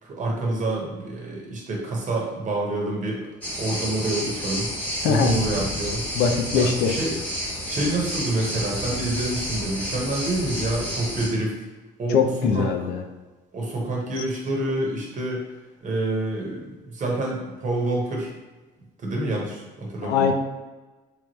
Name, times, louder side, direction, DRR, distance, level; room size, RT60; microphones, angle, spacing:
voice 1, 0.0-3.2 3.6-4.7 5.0-6.0 6.5-7.1 7.6-11.5 12.0-12.2 12.5-12.7 13.5-15.4 15.8-18.3 19.0-20.3, right 2 dB, 50° right, -1 dB, 1.2 m, -27 dB
sound 1, 3.4-11.3, equal, 10° left, 1.1 m, -30 dB
voice 2, 5.0-5.4 6.1-6.9 12.1-13.0 20.0-20.3, left 6 dB, 90° left, 5 dB, 0.5 m, -21 dB
3.4 x 3.1 x 3.1 m, 1.2 s
cardioid pair, 110°, 17 cm